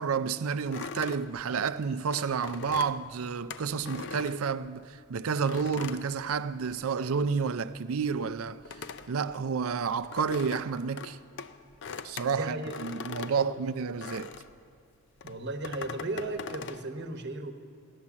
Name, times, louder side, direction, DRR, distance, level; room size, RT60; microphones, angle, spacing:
voice 1, 0.0-11.2 12.0-14.3, right 5 dB, 70° right, 0.5 m, -30 dB
sound 1, 0.7-5.0 5.5-7.0 7.2-14.6 15.2-16.8, left 5 dB, 55° left, 0.5 m, -42 dB
voice 2, 12.3-12.7 13.4-13.5 15.2-17.5, right 2 dB, 50° right, 1.0 m, -35 dB
15.5 x 11.0 x 7.3 m
head